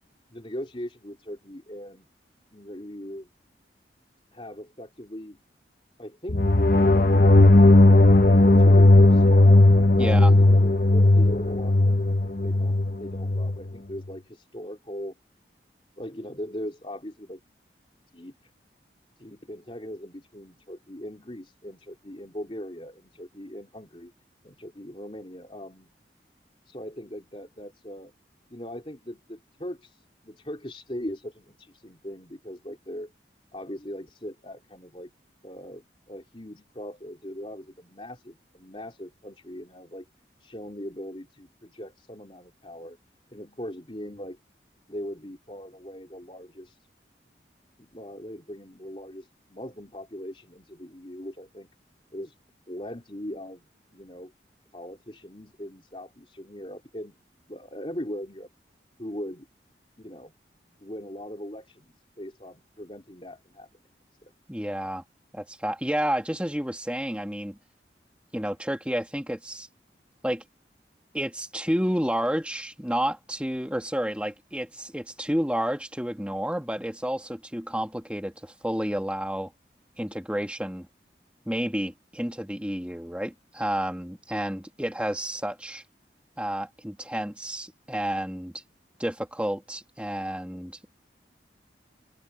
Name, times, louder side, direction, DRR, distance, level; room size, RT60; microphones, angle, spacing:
voice 1, 0.3-2.1 2.5-3.3 4.3-5.4 6.0-6.5 6.8-9.6 10.0-15.1 16.0-17.4 18.1-18.5 19.2-24.1 24.4-25.9 26.7-28.1 28.5-33.1 33.5-35.1 35.4-40.1 40.4-43.0 43.3-44.4 44.9-46.8 47.8-51.7 52.1-52.4 52.7-54.3 54.7-57.2 57.5-58.5 59.0-59.5 60.0-60.3 60.8-63.7 64.2-64.3, equal, 30° left, 3.7 m, -40 dB
sound 1, 6.3-13.6, left 2 dB, 50° left, 1.0 m, -16 dB
voice 2, 10.0-10.3 64.5-65.0 65.3-67.6 68.3-69.7 70.2-70.4 71.1-79.5 80.0-80.9 81.5-85.8 86.4-88.6 89.0-90.8, equal, 5° right, 1.9 m, -30 dB
head